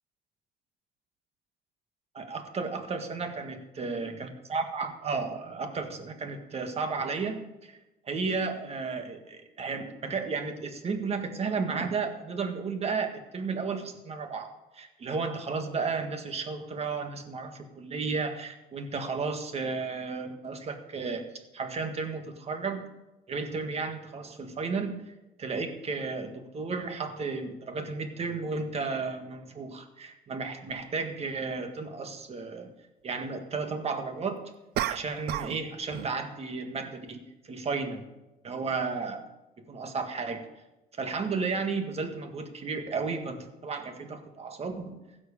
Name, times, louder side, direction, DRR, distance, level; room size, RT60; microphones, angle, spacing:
voice 1, 2.1-7.8 8.0-22.9 23.3-25.1 25.4-32.7 33.0-34.4 34.9-38.1 38.4-39.3 39.6-40.4 40.9-45.0, right 4 dB, 35° right, 6 dB, 1.7 m, -33 dB
sound 1, 30.7-30.8 34.7-35.6 35.9-36.2, right 13 dB, 70° right, 0.5 m, -32 dB
16.0 x 6.2 x 6.9 m, 0.98 s
cardioid pair, 110°, 17 cm